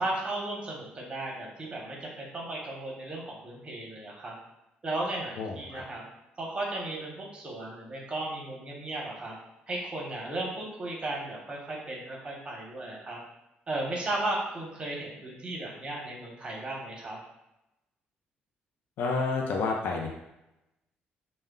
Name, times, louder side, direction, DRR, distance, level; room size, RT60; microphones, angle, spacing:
voice 1, 0.0-4.3 4.8-6.0 6.4-9.3 9.7-13.2 13.7-17.2, right 2 dB, 30° right, -2 dB, 0.8 m, -35 dB
voice 2, 5.4-5.8 19.0-20.1, left 4 dB, 75° left, 0 dB, 0.4 m, -29 dB
2.2 x 2.1 x 3.5 m, 0.92 s
cardioid pair, 100°, 4 cm